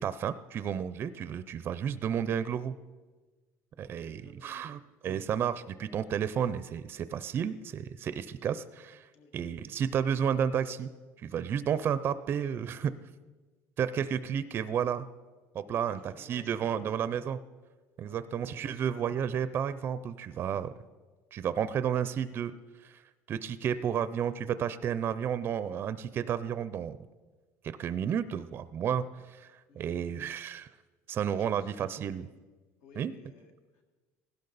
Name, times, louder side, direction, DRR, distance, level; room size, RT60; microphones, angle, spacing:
voice 1, 0.0-2.7 3.8-10.9 11.2-12.9 13.8-15.1 15.5-17.4 18.0-20.7 21.3-22.5 22.8-23.0 23.3-27.0 27.6-30.7 31.1-32.3 33.0-33.1, right 8 dB, 40° right, 14 dB, 0.4 m, -32 dB
voice 2, 4.0-4.7 9.1-9.3 15.6-16.9 18.0-18.3 18.6-19.0 29.7-30.0 31.4-31.7 32.8-33.8, left 3 dB, 80° left, 4 dB, 1.8 m, -56 dB
16.5 x 12.0 x 4.0 m, 1.3 s
cardioid pair, 135°, 6 cm